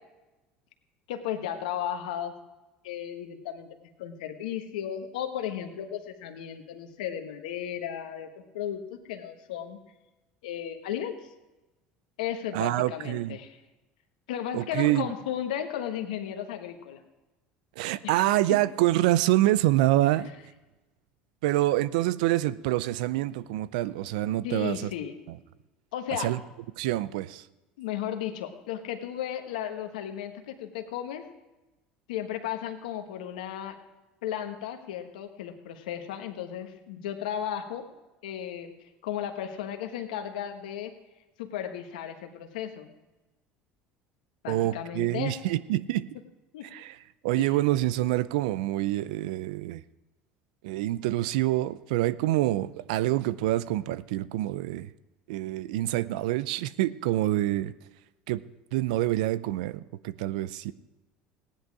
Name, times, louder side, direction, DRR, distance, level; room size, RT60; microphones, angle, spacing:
voice 1, 1.1-2.3 2.8-3.7 4.0-8.8 9.1-9.8 10.4-11.2 12.2-13.6 14.3-17.0 18.0-18.2 24.4-25.2 25.9-26.3 27.8-31.3 32.1-33.8 34.2-37.8 38.2-38.7 39.0-40.9 41.4-42.9 44.4-45.3 46.5-46.6 47.3-47.4, left 10 dB, 85° left, 1.3 m, -34 dB
voice 2, 12.5-13.4 14.5-15.1 17.8-20.3 21.4-24.9 26.2-26.4 26.8-27.4 44.5-46.1 46.7-47.0 47.2-49.8 50.6-54.9 55.3-57.7 58.3-58.4 58.7-60.7, right 15 dB, 80° right, 0.5 m, -26 dB
16.0 x 10.5 x 4.8 m
supercardioid pair, 85°, 4 cm